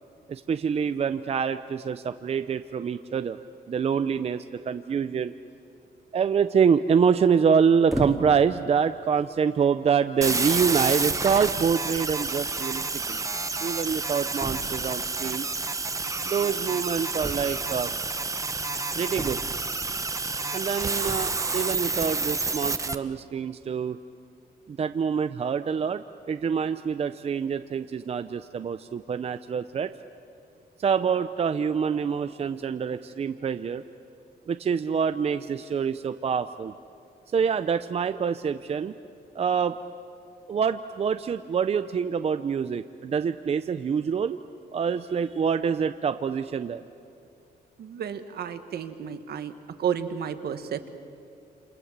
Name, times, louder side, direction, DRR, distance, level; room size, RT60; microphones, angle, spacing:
voice 1, 0.3-3.4 3.7-5.3 6.1-13.2 13.6-15.4 16.2-17.9 19.0-19.4 20.5-24.0 24.7-29.9 30.8-33.8 34.5-36.7 37.3-38.9 39.4-39.8 40.5-44.4 44.7-46.8, right 6 dB, 40° right, 10 dB, 0.6 m, -26 dB
sound 1, 7.9-8.5 9.3-9.4 10.2-10.3 10.6-10.9 12.1-12.2 12.4-12.5 12.7-12.8 14.4-14.9 17.2-17.9 19.1-19.8 21.0-21.4, right 1 dB, ahead, 2.4 m, -35 dB
sound 2, 10.2-22.9, right 3 dB, 20° right, 1.0 m, -29 dB
voice 2, 47.8-49.5 49.8-50.9, right 8 dB, 70° right, 9 dB, 1.6 m, -32 dB
28.5 x 27.0 x 7.4 m, 2.5 s
cardioid pair, 135°, 17 cm